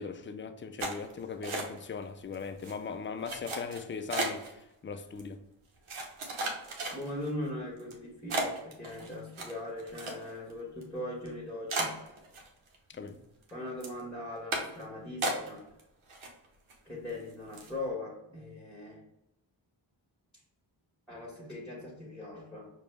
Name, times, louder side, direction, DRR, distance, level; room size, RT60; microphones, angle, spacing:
voice 1, 0.0-4.4 4.8-5.4 12.9-13.2, left 5 dB, 25° left, 0.4 m, -39 dB
sound 1, 0.8-2.0 2.3-2.7 3.2-4.5 5.2-5.3 5.9-7.3 7.8-7.9 8.3-10.5 10.8-10.9 11.3-11.4 11.7-12.8 13.1-13.5 13.8-14.0 14.5-14.8 15.2-15.8 16.1-16.7 17.1-17.2 17.5-17.8, right 2 dB, 75° right, 1.0 m, -35 dB
voice 2, 6.9-11.9 13.5-15.6 16.8-19.0 21.1-22.7, left 1 dB, ahead, 1.5 m, -40 dB
4.9 x 2.4 x 3.3 m
cardioid pair, 40°, 49 cm